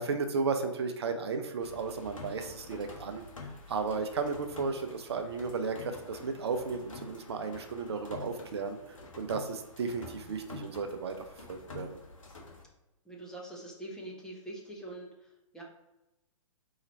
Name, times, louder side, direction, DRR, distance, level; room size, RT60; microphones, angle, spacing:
voice 1, 0.0-3.2 3.7-8.8 9.2-11.2 11.5-12.0, right 4 dB, 50° right, 7 dB, 0.6 m, -34 dB
sound 1, 1.6-12.6, left 3 dB, 70° left, 1.2 m, -48 dB
voice 2, 13.1-15.6, right 1 dB, 5° left, -3 dB, 0.6 m, -44 dB
4.1 x 2.9 x 4.0 m, 0.96 s
figure-of-eight pair, 120°, 17 cm